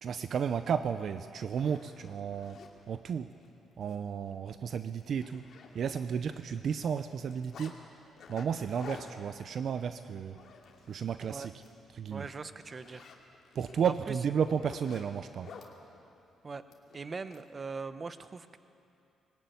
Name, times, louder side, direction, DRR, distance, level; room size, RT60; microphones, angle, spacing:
voice 1, 0.0-3.3 3.8-5.4 5.7-7.8 8.3-10.4 10.9-11.5 11.9-12.3 13.5-15.5, right 7 dB, 60° right, 10 dB, 0.7 m, -33 dB
Zipper (clothing), 0.9-1.0 1.4-2.7 3.3-3.5 3.8-4.0 4.3-4.4 4.8-6.1 6.3-7.7 8.2-11.1 11.5-11.7 12.1-15.7 16.7-17.4, left 6 dB, 60° left, 2.6 m, -51 dB
voice 2, 12.1-13.1 13.8-13.9 16.4-16.6 16.9-18.6, right 4 dB, 35° right, 11 dB, 1.0 m, -41 dB
20.5 x 18.0 x 9.4 m, 2.7 s
cardioid pair, 90°, 0 cm